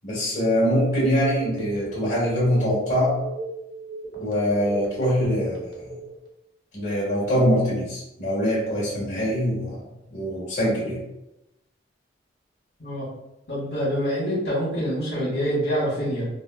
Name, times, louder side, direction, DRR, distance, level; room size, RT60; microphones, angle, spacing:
voice 1, 0.0-3.1 4.1-5.9 6.7-9.8 10.1-11.0, equal, 40° left, -7 dB, 1.5 m, -23 dB
Telephone, 1.1-6.3, right 3 dB, 60° right, 0.9 m, -36 dB
voice 2, 13.5-16.3, equal, 60° left, -9 dB, 1.4 m, -26 dB
4.8 x 2.1 x 2.3 m, 0.91 s
head